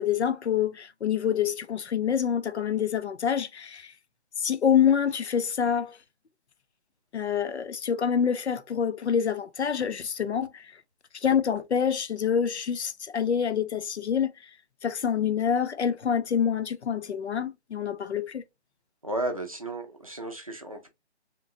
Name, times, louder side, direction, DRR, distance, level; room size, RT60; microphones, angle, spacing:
voice 1, 0.0-3.9 4.4-6.0 7.1-10.7 11.2-14.3 14.8-18.4, left 8 dB, 75° left, 0.6 m, -26 dB
voice 2, 19.0-20.9, right 2 dB, 30° right, 0.5 m, -33 dB
3.7 x 2.9 x 2.6 m
figure-of-eight pair, 165°, 34 cm